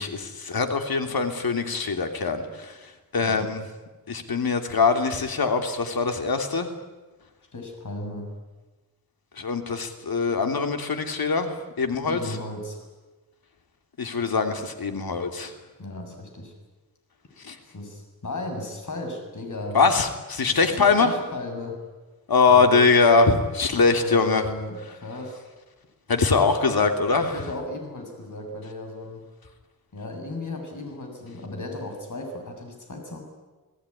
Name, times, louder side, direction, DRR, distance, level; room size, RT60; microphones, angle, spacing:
voice 1, 0.0-3.7 4.1-6.7 9.4-12.4 14.0-15.5 17.4-17.6 19.7-21.1 22.3-24.5 26.1-27.3, left 4 dB, 80° left, 6 dB, 3.0 m, -22 dB
voice 2, 7.5-8.3 12.0-12.8 15.8-16.5 17.7-19.8 20.5-21.8 22.5-22.9 23.9-25.5 27.3-29.2 29.9-33.2, left 2 dB, 55° left, 3 dB, 7.3 m, -35 dB
29.5 x 18.5 x 10.0 m, 1.2 s
wide cardioid pair, 95°, 36 cm